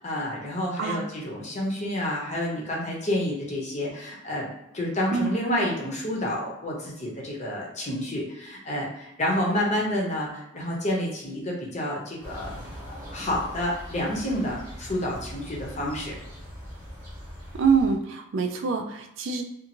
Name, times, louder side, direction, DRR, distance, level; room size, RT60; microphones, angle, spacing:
voice 1, 0.0-12.5 13.1-16.1, left 1 dB, 35° left, -3 dB, 0.7 m, -29 dB
sound 1, 12.2-18.0, equal, 15° right, 0.9 m, -41 dB
voice 2, 17.6-19.4, right 5 dB, 65° right, 3 dB, 0.4 m, -25 dB
2.6 x 2.4 x 2.9 m, 0.87 s
head